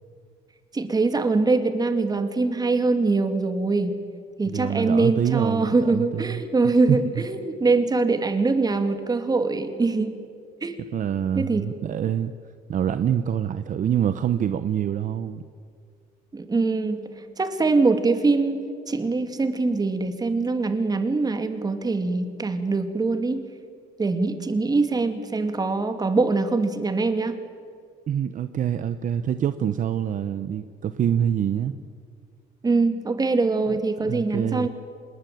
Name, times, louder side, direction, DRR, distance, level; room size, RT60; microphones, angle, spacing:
voice 1, 0.7-4.0 4.4-10.2 10.6-10.7 11.3-11.7 16.3-23.5 24.0-27.4 32.6-34.7, right 3 dB, 25° right, 8 dB, 2.6 m, -23 dB
voice 2, 4.5-7.2 10.9-12.3 12.7-15.4 28.1-31.7 33.7-34.7, right 9 dB, 50° right, 11 dB, 1.0 m, -26 dB
25.5 x 21.0 x 9.3 m, 2.2 s
cardioid pair, 110°, 17 cm